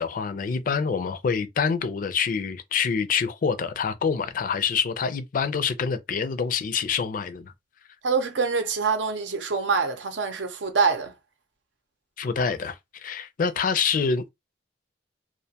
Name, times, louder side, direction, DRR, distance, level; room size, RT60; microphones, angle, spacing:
voice 1, 0.0-7.5 12.2-14.3, left 6 dB, 50° left, 0.4 m, -26 dB
voice 2, 8.0-11.1, right 5 dB, 90° right, 0.7 m, -25 dB
2.4 x 2.2 x 2.7 m
head